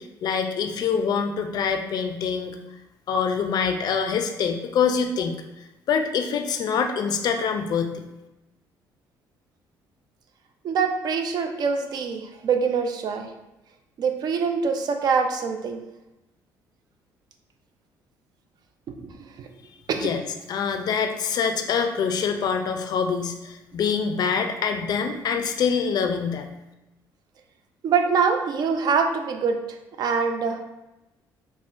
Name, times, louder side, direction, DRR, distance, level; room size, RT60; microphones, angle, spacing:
voice 1, 0.0-2.6 3.1-5.4 5.9-8.0 20.0-20.2 20.5-26.5, left 6 dB, 55° left, 7 dB, 0.4 m, -25 dB
voice 2, 10.6-13.3 14.0-15.8 18.9-19.5 19.9-20.1 27.8-29.6 30.0-30.7, right 5 dB, 55° right, 6 dB, 0.4 m, -24 dB
3.5 x 2.1 x 2.5 m, 0.96 s
supercardioid pair, 80°, 8 cm